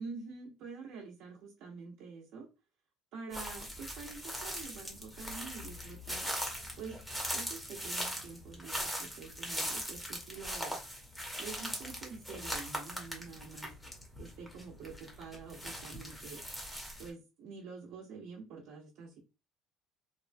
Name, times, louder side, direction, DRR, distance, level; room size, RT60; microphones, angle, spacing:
voice 1, 0.0-2.5 3.1-6.3 6.8-7.0 7.3-10.8 11.4-13.7 14.2-16.4 17.0-19.2, right 5 dB, 65° right, -5 dB, 0.8 m, -47 dB
sound 1, 3.3-17.1, equal, 5° left, 0.7 m, -40 dB
3.1 x 2.2 x 2.5 m, 0.28 s
cardioid pair, 150°, 0 cm